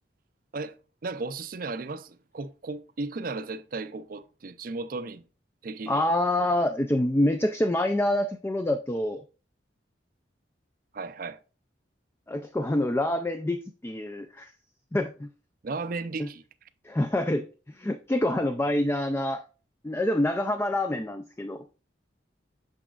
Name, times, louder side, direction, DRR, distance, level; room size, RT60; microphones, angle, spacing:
voice 1, 1.0-5.2 5.6-6.0 10.9-11.4 15.6-16.4, right 3 dB, 50° right, 0.5 m, -35 dB
voice 2, 5.9-9.2 12.3-14.5 14.9-15.3 16.2-16.3 16.8-17.5 17.8-19.4 19.8-21.6, left 1 dB, 15° left, 0.3 m, -26 dB
6.7 x 6.1 x 2.4 m
head